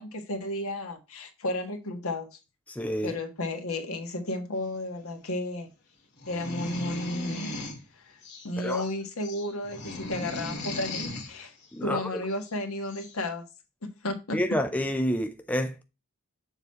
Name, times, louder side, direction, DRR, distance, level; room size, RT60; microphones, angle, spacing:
voice 1, 0.0-2.3 3.0-5.7 6.3-7.6 8.0-8.2 8.4-11.5 11.8-13.4 13.8-14.6, left 1 dB, 75° left, 1.5 m, -33 dB
voice 2, 2.7-3.1 8.6-8.9 11.7-12.2 14.3-15.8, equal, 5° left, 0.4 m, -29 dB
sound 1, 6.2-7.8 8.2-8.9 9.2-11.3 12.5-12.6 12.9-13.2, left 2 dB, 50° left, 1.9 m, -37 dB
7.0 x 4.1 x 4.1 m
head